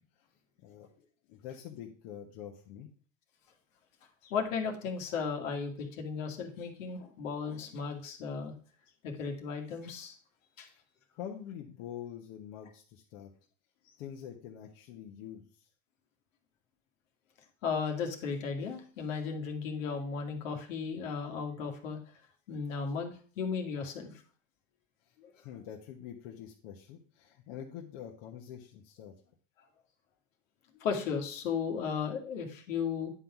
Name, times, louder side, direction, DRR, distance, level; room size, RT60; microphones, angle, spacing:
voice 1, 1.3-2.9 11.2-13.3 14.0-15.7 25.4-29.1, left 9 dB, 70° left, 1 dB, 1.3 m, -45 dB
voice 2, 4.2-8.5 9.0-10.2 10.6-10.7 17.6-22.0 22.5-24.2 25.2-25.3 30.8-33.1, left 5 dB, 90° left, 3 dB, 1.9 m, -35 dB
9.7 x 3.9 x 6.0 m, 0.41 s
supercardioid pair, 90°, 38 cm